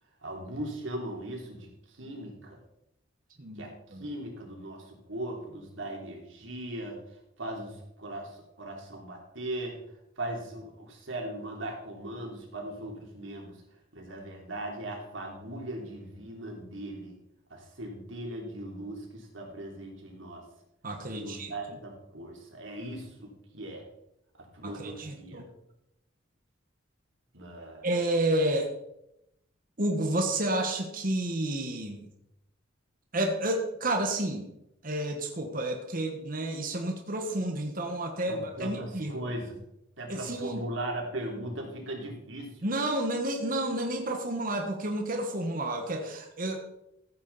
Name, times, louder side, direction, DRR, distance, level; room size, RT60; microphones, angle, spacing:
voice 1, 0.2-2.6 3.6-3.7 4.0-7.0 7.4-9.7 10.2-13.5 13.9-17.2 17.5-20.4 21.1-23.8 24.5-25.4 27.3-27.9 38.3-39.6 40.0-42.6, right 1 dB, 70° right, 0 dB, 3.3 m, -39 dB
voice 2, 3.4-4.1 20.8-21.8 24.6-25.5 27.8-28.7 29.8-32.1 33.1-34.5 34.8-39.1 40.1-40.6 42.6-46.6, right 1 dB, 45° right, 3 dB, 1.4 m, -30 dB
15.0 x 8.5 x 4.1 m, 0.82 s
head